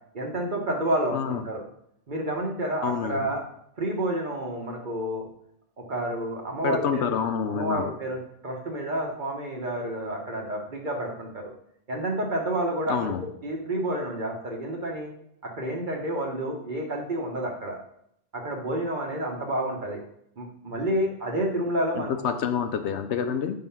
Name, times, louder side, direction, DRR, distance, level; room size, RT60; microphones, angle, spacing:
voice 1, 0.1-1.6 2.1-3.4 3.8-5.3 5.8-7.1 7.5-8.2 8.4-11.5 11.9-13.1 13.4-15.1 15.4-17.8 18.3-20.0 20.4-22.3, right 1 dB, 45° right, 0 dB, 1.3 m, -29 dB
voice 2, 1.1-1.4 2.8-3.3 6.6-7.9 12.9-13.2 21.9-23.6, left 7 dB, 80° left, 8 dB, 0.9 m, -27 dB
5.7 x 3.9 x 5.6 m, 0.72 s
omnidirectional pair, 1.1 m